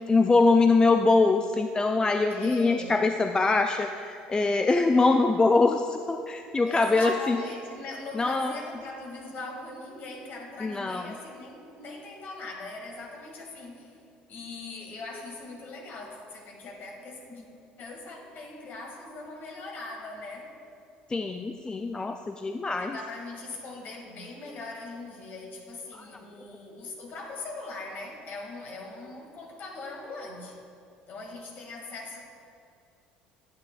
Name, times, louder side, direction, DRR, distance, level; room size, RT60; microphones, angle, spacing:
voice 1, 0.1-7.4 8.1-8.5 10.6-11.1 21.1-23.0 25.9-26.1, left 3 dB, 20° left, 6 dB, 0.3 m, -23 dB
voice 2, 2.3-2.9 6.7-14.0 14.3-17.5 17.8-20.5 22.6-30.6 31.1-32.2, left 2 dB, 50° left, 0 dB, 2.0 m, -40 dB
10.5 x 9.1 x 2.4 m, 2.5 s
hypercardioid pair, 65°, 4 cm